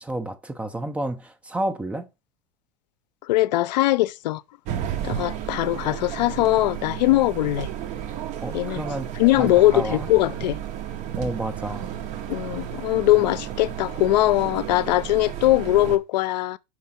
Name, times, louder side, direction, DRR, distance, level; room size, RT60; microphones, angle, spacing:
voice 1, 0.0-2.1 8.4-10.1 11.2-11.9, right 1 dB, 5° right, 0.5 m, -30 dB
voice 2, 3.3-4.4 5.0-7.7 8.5-8.8 9.2-10.6 12.3-16.6, left 16 dB, 90° left, 0.5 m, -21 dB
sound 1, 4.6-16.0, right 10 dB, 35° right, 0.9 m, -32 dB
6.2 x 4.8 x 5.7 m
supercardioid pair, 160°, 21 cm